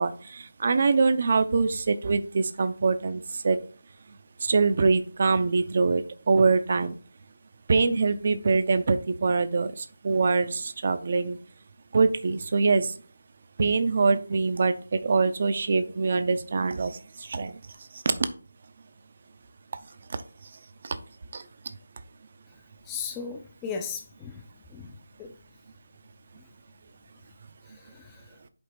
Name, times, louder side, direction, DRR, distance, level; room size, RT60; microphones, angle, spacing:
voice 1, 0.0-3.6 4.4-7.0 7.7-11.4 11.9-12.9 13.6-17.6 17.9-18.1 20.8-21.0 21.3-21.4, right 4 dB, 45° right, 0.6 m, -24 dB
voice 2, 22.9-24.4 24.7-24.9 25.2-25.3 27.7-28.2, left 6 dB, 15° left, 0.5 m, -36 dB
5.3 x 3.7 x 5.7 m
figure-of-eight pair, 160°, 0 cm